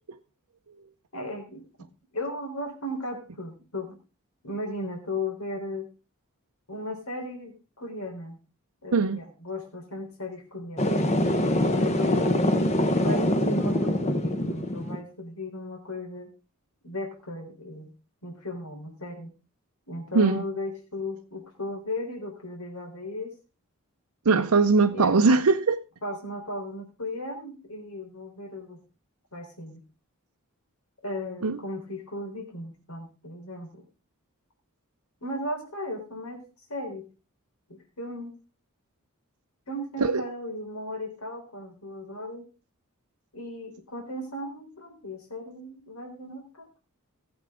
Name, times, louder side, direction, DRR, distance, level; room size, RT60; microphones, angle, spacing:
voice 1, 1.1-1.6 2.1-4.0 4.4-5.9 6.7-8.4 8.8-11.0 11.6-12.6 12.9-16.3 16.8-17.9 18.2-19.3 19.9-23.4 24.9-25.4 26.0-28.8 29.3-29.8 31.0-33.8 35.2-36.4 36.7-37.1 37.7-38.4 39.7-42.5 43.3-46.7, left 1 dB, 80° left, 3.9 m, -36 dB
sound 1, 10.8-15.0, left 1 dB, 30° left, 1.1 m, -24 dB
voice 2, 20.1-20.4 24.3-25.8 31.4-31.6 40.0-40.2, right 4 dB, 85° right, 0.7 m, -20 dB
18.5 x 8.0 x 3.7 m
head